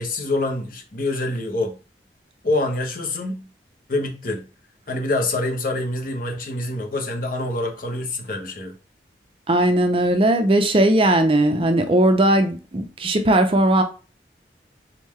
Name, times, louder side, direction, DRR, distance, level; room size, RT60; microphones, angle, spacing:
voice 1, 0.0-1.8 2.4-3.5 3.9-4.4 4.9-8.7, left 2 dB, 50° left, 1.0 m, -26 dB
voice 2, 9.5-13.8, right 1 dB, 30° right, 0.5 m, -18 dB
4.4 x 3.7 x 3.1 m
head